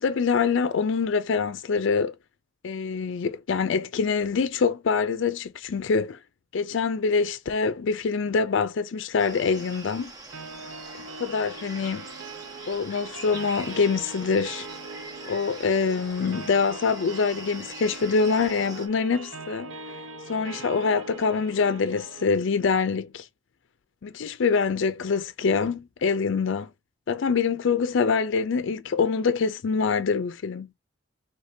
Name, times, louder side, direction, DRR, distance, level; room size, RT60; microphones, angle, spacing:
voice 1, 0.0-2.2 2.6-6.2 6.5-10.1 11.2-12.1 12.7-14.7 15.3-19.7 20.3-23.3 24.0-26.7 27.1-30.7, left 5 dB, 65° left, 0.4 m, -25 dB
sound 1, 9.2-18.9, right 2 dB, 20° right, 1.1 m, -43 dB
sound 2, 10.3-22.3, right 3 dB, 75° right, 0.8 m, -42 dB
5.0 x 3.3 x 2.6 m
head